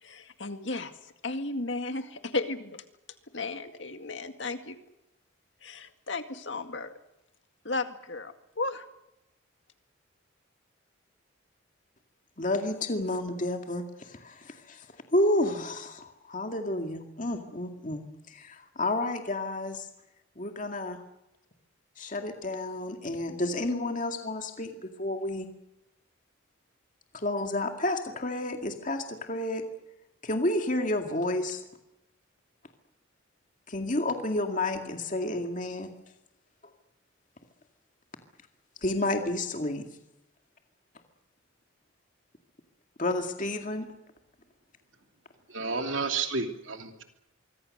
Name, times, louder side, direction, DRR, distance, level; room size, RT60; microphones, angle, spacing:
voice 1, 0.0-2.8 3.3-4.8 5.6-6.9 7.6-8.9, left 3 dB, 60° left, 7 dB, 2.1 m, -34 dB
voice 2, 12.4-14.9 15.1-19.9 20.4-21.0 22.0-25.5 27.1-29.7 30.2-31.6 33.7-35.9 38.8-39.9 43.0-43.9, left 1 dB, 40° left, 4 dB, 2.2 m, -30 dB
voice 3, 45.5-47.0, right 4 dB, 70° right, 5 dB, 2.9 m, -31 dB
25.0 x 24.5 x 6.6 m, 0.89 s
head